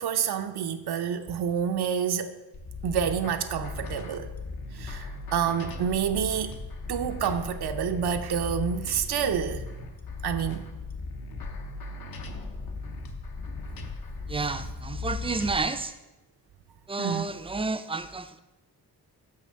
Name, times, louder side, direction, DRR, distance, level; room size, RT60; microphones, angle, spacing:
voice 1, 0.0-2.3 2.8-4.3 4.7-6.5 6.9-9.6 10.2-10.7 17.0-17.3, right 8 dB, 85° right, 0.6 m, -28 dB
sound 1, 2.5-15.6, left 3 dB, 70° left, 0.9 m, -37 dB
voice 2, 14.3-16.0 16.9-18.4, right 3 dB, 15° right, 0.3 m, -30 dB
6.4 x 5.6 x 6.2 m
wide cardioid pair, 155°, 38 cm